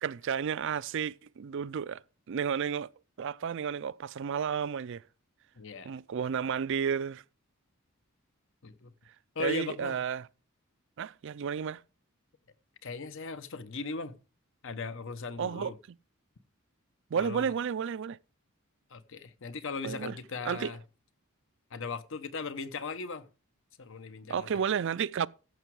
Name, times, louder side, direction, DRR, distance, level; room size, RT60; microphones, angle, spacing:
voice 1, 0.0-2.0 2.3-2.9 3.2-5.0 5.8-7.2 9.4-10.2 11.0-11.8 15.4-15.7 17.1-18.2 19.8-20.2 20.4-20.7 24.3-25.3, right 7 dB, 60° right, 0.4 m, -32 dB
voice 2, 5.6-5.9 8.6-8.9 9.3-10.0 12.8-14.1 14.6-15.8 17.2-17.5 18.9-20.8 21.7-23.3 23.8-24.6, left 4 dB, 65° left, 0.9 m, -38 dB
14.5 x 6.1 x 4.7 m
head